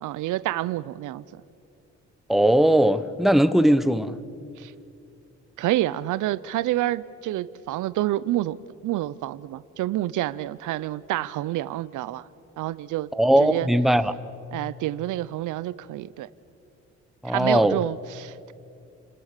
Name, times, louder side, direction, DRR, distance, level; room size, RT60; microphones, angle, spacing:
voice 1, 0.0-1.2 4.6-4.7 5.6-8.6 8.8-12.3 12.6-13.1 13.4-13.7 14.5-16.3 17.2-18.5, right 15 dB, 80° right, 18 dB, 0.6 m, -28 dB
voice 2, 2.3-4.2 13.2-14.1 17.2-17.8, right 1 dB, ahead, 13 dB, 0.9 m, -19 dB
30.0 x 20.5 x 6.7 m, 2.6 s
cardioid pair, 90°, 30 cm